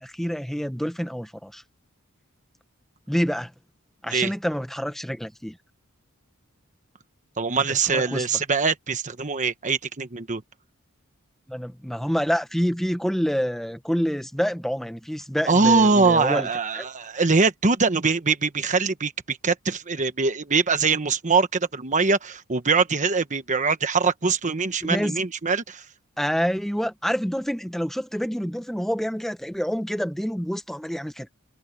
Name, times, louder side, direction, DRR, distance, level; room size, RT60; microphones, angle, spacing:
voice 1, 0.0-1.6 3.1-3.5 4.0-5.6 7.9-8.3 11.5-16.5 16.7-16.9 24.8-25.1 26.2-31.3, equal, ahead, 1.1 m, -27 dB
voice 2, 7.4-10.4 15.5-25.8, right 4 dB, 35° right, 1.2 m, -23 dB
head